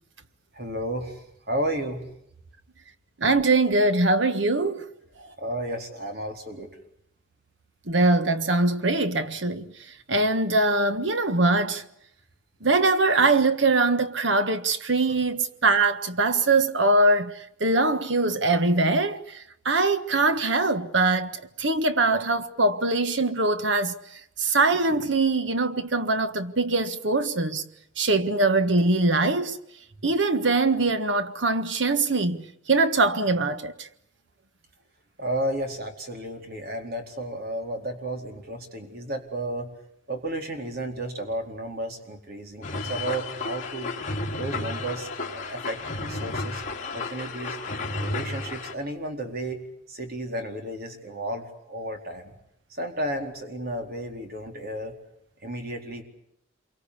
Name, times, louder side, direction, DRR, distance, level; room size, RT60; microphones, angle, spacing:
voice 1, 0.5-2.0 5.4-6.7 35.2-39.7 40.1-43.9 44.4-46.6 46.9-47.6 48.0-49.6 49.9-52.3 52.7-54.9 55.4-56.0, right 1 dB, 55° right, 4.3 m, -33 dB
voice 2, 3.2-4.8 7.9-9.7 10.1-11.8 12.6-17.3 17.6-23.9 24.4-27.6 28.0-29.6 30.0-33.9, right 2 dB, 70° right, 1.5 m, -22 dB
sound 1, 42.6-48.7, left 3 dB, 40° left, 3.1 m, -32 dB
27.5 x 24.0 x 8.4 m
head